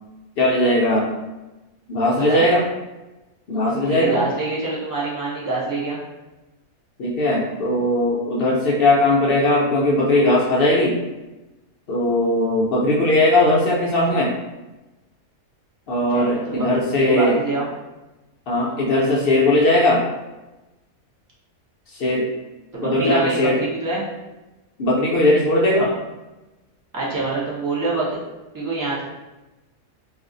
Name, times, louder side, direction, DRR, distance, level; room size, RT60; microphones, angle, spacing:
voice 1, 0.4-1.1 1.9-2.7 3.5-4.2 7.0-11.0 11.9-14.3 15.9-17.4 18.5-20.0 21.9-22.3 22.8-23.6 24.8-25.9, left 1 dB, 70° left, -3 dB, 0.5 m, -19 dB
voice 2, 3.9-6.0 16.1-16.7 17.0-17.7 22.7-24.0 25.8-25.9 26.9-28.2 28.5-29.0, right 3 dB, 20° right, -6 dB, 0.6 m, -25 dB
2.5 x 2.4 x 3.7 m, 1.1 s
omnidirectional pair, 1.5 m